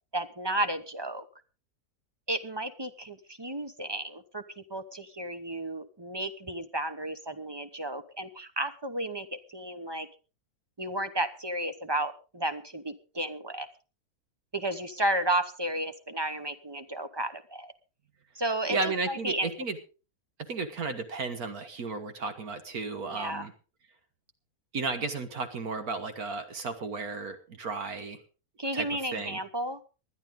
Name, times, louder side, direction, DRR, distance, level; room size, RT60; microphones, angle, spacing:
voice 1, 0.1-1.2 2.3-10.1 10.8-13.7 14.5-17.7 18.3-19.5 22.9-23.5 28.6-29.8, right 1 dB, 20° right, 10 dB, 0.8 m, -33 dB
voice 2, 18.7-19.8 20.5-23.5 24.7-28.2 28.7-29.4, right 4 dB, 70° right, 9 dB, 1.8 m, -33 dB
20.0 x 11.5 x 3.7 m, 0.33 s
omnidirectional pair, 1.6 m